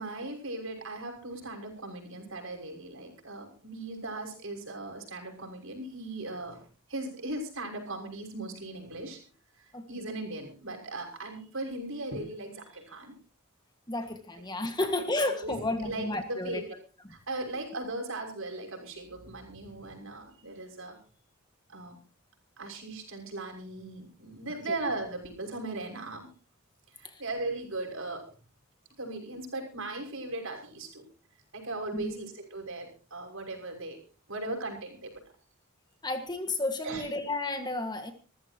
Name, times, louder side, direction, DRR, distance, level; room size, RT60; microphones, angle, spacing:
voice 1, 0.0-6.6 6.9-9.2 9.6-13.1 14.8-14.9 15.4-16.7 17.1-21.0 21.7-22.0 22.6-26.3 27.0-28.3 29.0-31.0 31.5-34.0 34.3-35.1 36.8-37.0, right 2 dB, 70° right, 2 dB, 6.2 m, -38 dB
voice 2, 9.7-10.2 13.9-16.6 27.0-27.2 31.9-32.1 36.0-38.1, left 2 dB, 20° left, 6 dB, 1.8 m, -32 dB
26.5 x 14.5 x 3.0 m, 0.36 s
head